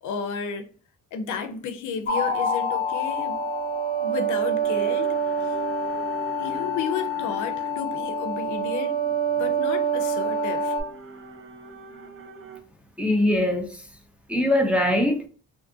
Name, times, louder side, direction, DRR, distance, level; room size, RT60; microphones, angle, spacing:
voice 1, 0.0-0.7 1.1-3.4 4.0-5.1 5.4-5.6 6.4-10.8, left 6 dB, 80° left, 0.5 m, -32 dB
sound 1, 2.1-10.8, right 2 dB, 40° left, 1.0 m, -26 dB
sound 2, 4.6-12.6, right 3 dB, 45° right, 0.7 m, -43 dB
voice 2, 13.0-13.8 14.3-15.3, left 1 dB, 5° right, 0.5 m, -22 dB
2.6 x 2.5 x 2.6 m
cardioid pair, 90°, 30 cm